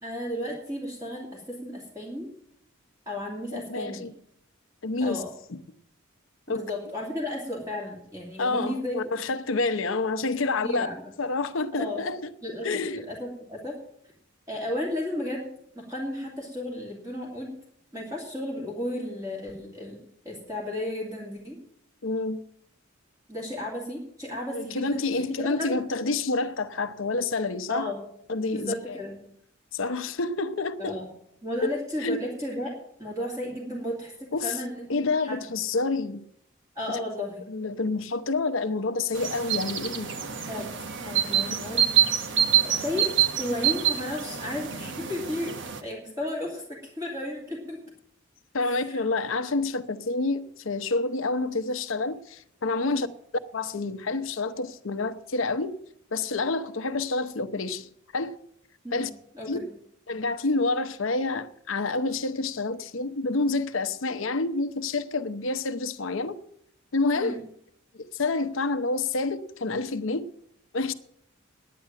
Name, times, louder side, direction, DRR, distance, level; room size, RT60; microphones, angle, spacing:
voice 1, 0.0-2.3 3.1-4.1 5.0-5.3 6.5-9.2 10.6-11.1 11.7-12.0 12.4-12.7 12.9-13.8 14.5-15.5 15.7-17.5 17.9-20.0 20.2-21.6 23.3-25.0 25.4-25.8 27.7-28.0 28.5-29.2 30.8-31.1 31.4-34.9 35.2-35.4 36.7-37.5 40.4-40.7 41.0-41.8 42.2-42.3 42.6-43.1 43.4-45.5 45.8-47.8 48.6-49.0 52.8-53.0 58.8-59.7 67.1-67.4, left 1 dB, 15° right, 2.7 m, -34 dB
voice 2, 3.5-4.1 4.8-5.2 5.5-5.6 6.5-6.6 8.4-10.9 11.2-12.3 12.6-13.0 22.0-22.4 24.5-27.9 28.3-29.0 29.7-31.0 31.6-32.2 34.3-34.6 34.9-36.2 37.5-40.1 48.5-53.1 53.5-55.8 56.1-58.4 58.9-59.1 59.5-59.6 60.1-66.4 66.9-67.4 67.9-70.3 70.7-70.9, left 3 dB, 70° left, 0.8 m, -28 dB
sound 1, 39.1-45.8, right 10 dB, 60° right, 1.1 m, -26 dB
10.5 x 9.4 x 7.5 m
head